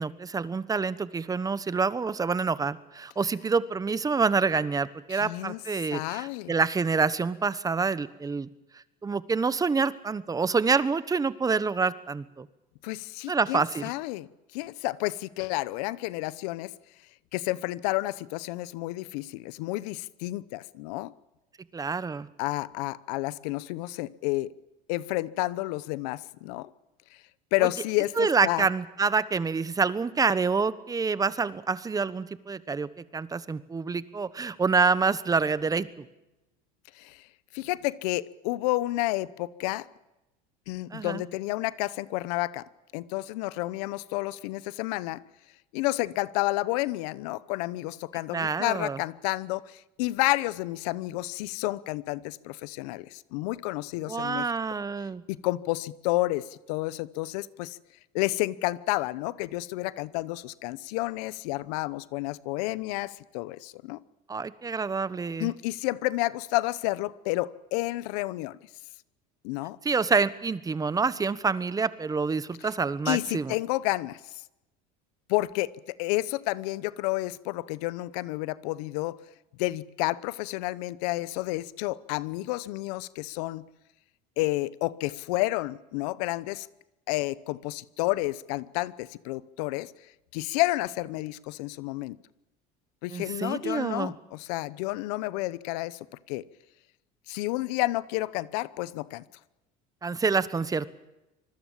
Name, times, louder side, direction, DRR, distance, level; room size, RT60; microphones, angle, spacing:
voice 1, 0.0-8.5 9.0-12.5 13.3-13.9 21.7-22.3 28.2-36.1 40.9-41.2 48.3-49.0 54.1-55.2 64.3-65.5 69.8-73.5 93.1-94.1 100.0-100.9, right 4 dB, 20° right, 16 dB, 1.2 m, -27 dB
voice 2, 5.1-5.6 5.9-6.5 12.8-14.3 14.5-16.7 17.3-21.1 22.4-24.5 24.9-26.7 27.5-28.7 37.0-37.2 37.5-39.9 40.7-42.6 42.9-45.2 45.7-54.5 55.3-57.8 58.1-64.0 65.4-68.6 69.4-69.8 73.1-74.2 75.3-79.2 79.6-83.7 84.4-86.7 87.1-89.9 90.3-92.2 93.0-96.4 97.3-99.2, left 19 dB, 85° left, 18 dB, 0.9 m, -30 dB
25.5 x 20.5 x 7.5 m, 0.96 s
supercardioid pair, 120°, 20 cm